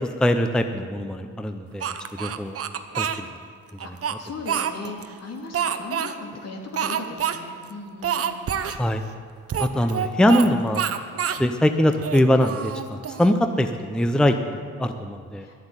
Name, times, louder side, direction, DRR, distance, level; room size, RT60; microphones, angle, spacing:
voice 1, 0.2-1.8 2.2-2.6 3.0-3.3 3.8-4.2 8.8-9.0 9.6-10.8 11.4-12.7 13.2-15.4, equal, 5° left, 7 dB, 0.6 m, -22 dB
Speech, 1.8-3.2 3.8-5.1 5.5-6.1 6.7-7.4 7.6-7.7 8.0-8.8 9.5-10.5 10.7-11.4 11.9-13.3, right 9 dB, 50° right, 0.8 m, -27 dB
voice 2, 3.8-8.4 15.4-15.6, left 3 dB, 55° left, 1 dB, 2.3 m, -37 dB
11.0 x 7.8 x 9.0 m, 2.1 s
cardioid pair, 90°, 30 cm